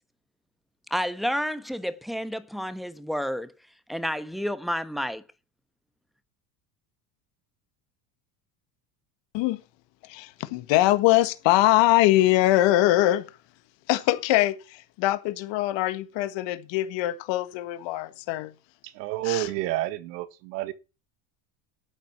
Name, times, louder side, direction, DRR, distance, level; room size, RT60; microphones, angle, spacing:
voice 1, 0.9-3.5 3.9-5.2, equal, ahead, 1.1 m, -30 dB
voice 2, 10.0-13.2 13.9-18.5 19.2-19.5, left 16 dB, 65° left, 1.7 m, -23 dB
voice 3, 18.8-20.7, right 15 dB, 90° right, 1.4 m, -29 dB
12.0 x 9.0 x 5.8 m
supercardioid pair, 115°, 48 cm